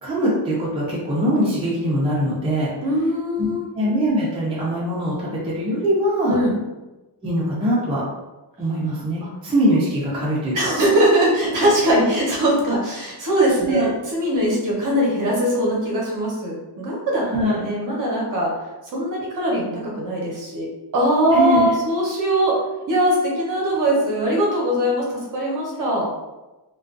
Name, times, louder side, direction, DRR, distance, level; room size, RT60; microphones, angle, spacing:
voice 1, 0.0-2.7 3.4-3.5 3.7-6.4 7.2-8.0 8.6-10.6 13.7-13.9 17.3-17.6 21.3-21.7, equal, 15° right, -8 dB, 0.5 m, -22 dB
voice 2, 2.8-3.7 6.3-6.6 10.5-17.2 17.5-18.5 18.9-20.7 20.9-22.6 22.9-26.1, right 1 dB, 45° right, -3 dB, 0.7 m, -21 dB
2.4 x 2.3 x 2.4 m, 1.1 s
wide cardioid pair, 170°, 44 cm